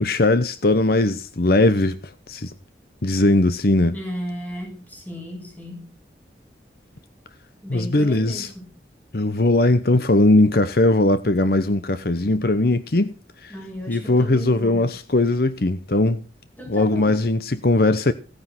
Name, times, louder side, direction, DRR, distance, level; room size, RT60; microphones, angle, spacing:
voice 1, 0.0-2.5 3.0-4.0 7.7-8.5 9.1-13.1 13.4-13.5 13.9-16.2 16.7-18.1, left 2 dB, 60° left, 0.9 m, -19 dB
voice 2, 3.9-5.9 7.6-8.7 13.5-14.8 16.6-17.2, equal, 10° left, 6.6 m, -35 dB
16.5 x 9.8 x 6.2 m
head